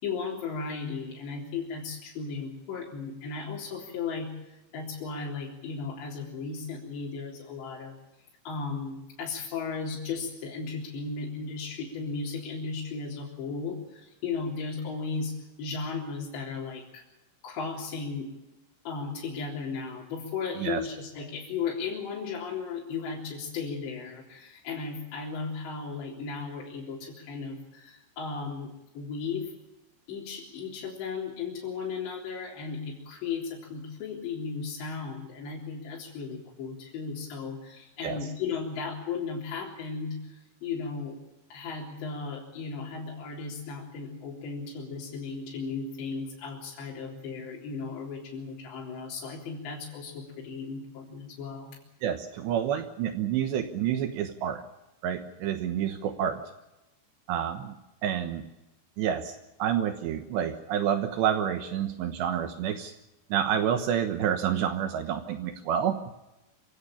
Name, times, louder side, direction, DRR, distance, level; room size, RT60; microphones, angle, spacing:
voice 1, 0.0-7.9 8.5-17.0 17.4-18.3 18.9-29.5 30.1-41.2 41.5-51.8, left 5 dB, 65° left, -4 dB, 5.8 m, -35 dB
voice 2, 52.0-54.6 55.0-56.4 57.3-57.8 58.0-58.5 59.0-59.3 59.6-62.9 63.3-66.1, right 9 dB, 70° right, 7 dB, 3.2 m, -28 dB
26.0 x 17.0 x 8.7 m, 0.97 s
omnidirectional pair, 5.5 m